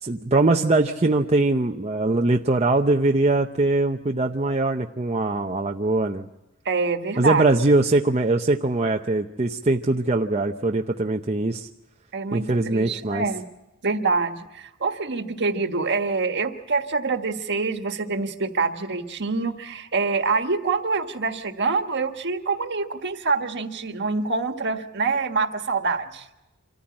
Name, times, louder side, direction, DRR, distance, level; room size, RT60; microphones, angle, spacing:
voice 1, 0.0-6.3 7.2-11.7 12.3-13.3, right 2 dB, 30° right, 2 dB, 0.7 m, -22 dB
voice 2, 6.6-7.4 12.1-13.4 13.8-26.2, right 4 dB, 50° right, 6 dB, 1.6 m, -25 dB
26.0 x 14.5 x 8.7 m, 0.98 s
head